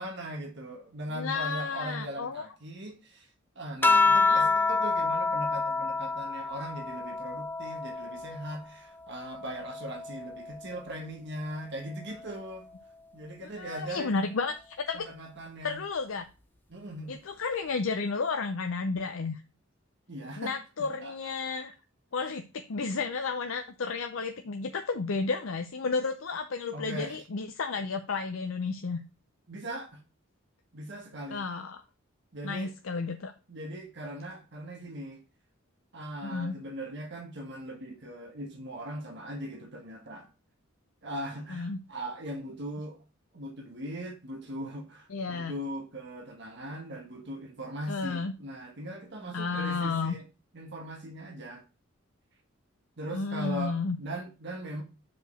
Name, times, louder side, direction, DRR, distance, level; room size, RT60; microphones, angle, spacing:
voice 1, 0.0-3.3 3.5-12.7 13.1-14.1 14.9-15.8 16.7-17.2 20.1-20.5 20.8-21.1 21.5-21.6 26.7-27.2 29.5-30.0 30.7-31.4 32.3-32.7 33.5-35.2 35.9-40.3 41.0-43.0 43.3-50.2 50.5-51.6 53.0-54.8, right 1 dB, 55° right, 1.5 m, -39 dB
voice 2, 1.1-2.5 4.3-4.5 13.4-15.1 15.6-16.3 17.1-19.4 20.4-21.7 22.1-29.0 31.3-31.8 32.4-33.3 36.2-36.6 41.5-41.8 45.1-45.5 47.9-48.3 49.3-50.2 53.1-54.0, left 4 dB, 70° left, 0.6 m, -32 dB
sound 1, 3.8-8.6 9.1-10.8 12.0-12.5, left 4 dB, 10° left, 0.6 m, -28 dB
5.3 x 4.8 x 6.3 m
head